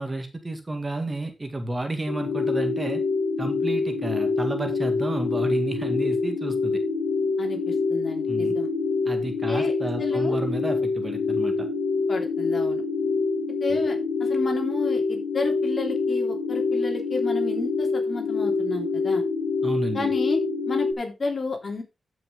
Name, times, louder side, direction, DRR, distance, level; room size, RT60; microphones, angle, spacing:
voice 1, 0.0-3.0 3.4-6.8 8.3-8.6 9.1-11.7 13.7-13.8 19.6-20.1, right 2 dB, 25° right, 6 dB, 1.9 m, -31 dB
sound 1, 2.1-20.9, left 4 dB, 85° left, 2.4 m, -26 dB
voice 2, 7.4-8.7 9.5-9.7 10.0-10.4 12.1-12.8 13.6-19.2 19.9-20.4 20.7-21.8, left 3 dB, 45° left, 3 dB, 3.1 m, -31 dB
13.5 x 6.1 x 3.7 m, 0.26 s
wide cardioid pair, 95°, 0 cm